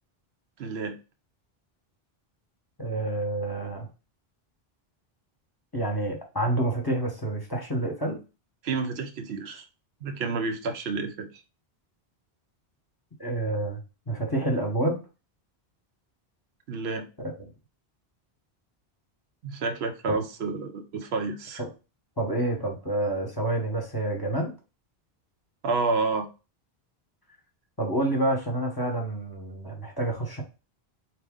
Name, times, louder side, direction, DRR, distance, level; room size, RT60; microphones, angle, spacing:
voice 1, 0.6-1.0 8.6-9.7 10.0-11.3 16.7-17.1 19.4-21.6 25.6-26.3, right 4 dB, 85° right, 1.0 m, -29 dB
voice 2, 2.8-3.9 5.7-8.2 13.2-13.8 14.1-15.0 17.2-17.4 20.1-20.2 21.6-21.7 22.2-24.5 27.8-30.4, right 1 dB, 25° left, 0.9 m, -28 dB
4.1 x 2.9 x 3.6 m
omnidirectional pair, 1.0 m